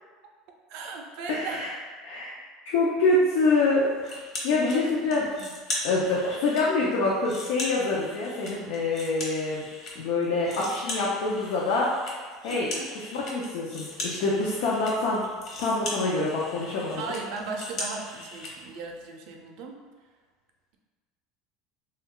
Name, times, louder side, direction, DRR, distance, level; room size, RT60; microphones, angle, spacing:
voice 1, 0.7-1.7 4.5-5.5 12.5-12.9 17.0-19.8, right 4 dB, 65° right, 2 dB, 0.4 m, -37 dB
voice 2, 1.3-1.7 2.0-2.3 2.7-5.3 5.8-9.6 10.0-11.9 12.4-12.7 13.1-15.2 15.6-17.0, left 3 dB, 75° left, -4 dB, 0.5 m, -26 dB
sound 1, 4.0-4.8 5.1-6.6 7.0-9.9 10.2-18.5, left 1 dB, 40° left, 0.8 m, -38 dB
3.0 x 2.2 x 3.6 m, 1.5 s
cardioid pair, 155°, 0 cm